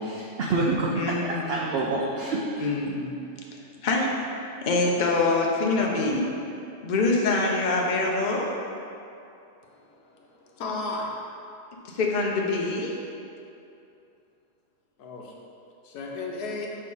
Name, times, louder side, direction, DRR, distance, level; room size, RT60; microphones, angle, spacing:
voice 1, 0.0-0.9 1.2-2.7, right 2 dB, 80° right, -3 dB, 0.5 m, -27 dB
voice 2, 1.0-1.9 2.6-3.2 3.8-4.2 4.6-6.3 6.8-8.5 11.8-12.9, left 3 dB, 60° left, -1 dB, 0.4 m, -25 dB
voice 3, 9.6-11.1 15.0-15.3 15.8-16.7, left 3 dB, 80° left, -1 dB, 1.3 m, -35 dB
5.5 x 3.3 x 5.4 m, 2.6 s
omnidirectional pair, 1.7 m